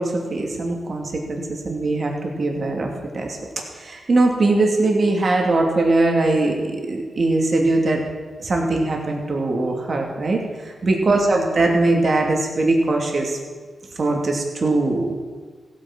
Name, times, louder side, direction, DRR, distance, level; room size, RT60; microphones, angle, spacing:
voice 1, 0.0-2.9 3.1-8.0 8.4-13.4 14.0-15.1, right 2 dB, 50° right, 1 dB, 2.5 m, -21 dB
16.0 x 9.4 x 6.1 m, 1.5 s
wide cardioid pair, 100°, 0 cm